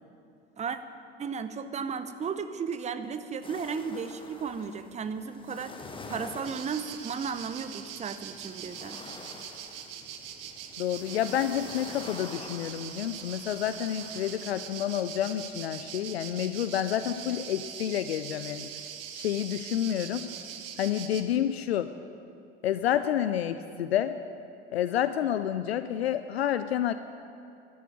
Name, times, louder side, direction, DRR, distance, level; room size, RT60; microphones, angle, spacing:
voice 1, 1.2-5.8 6.1-9.0, right 6 dB, 20° right, 11 dB, 0.7 m, -34 dB
sound 1, 3.4-15.4, left 3 dB, 15° left, 1.2 m, -47 dB
sound 2, 6.4-21.2, right 9 dB, 65° right, 1.1 m, -42 dB
voice 2, 10.8-18.7 19.1-20.3 20.8-21.9 22.6-24.2 24.7-26.9, left 10 dB, 75° left, 11 dB, 0.5 m, -29 dB
12.5 x 7.3 x 9.3 m, 2.6 s
figure-of-eight pair, 65°, 32 cm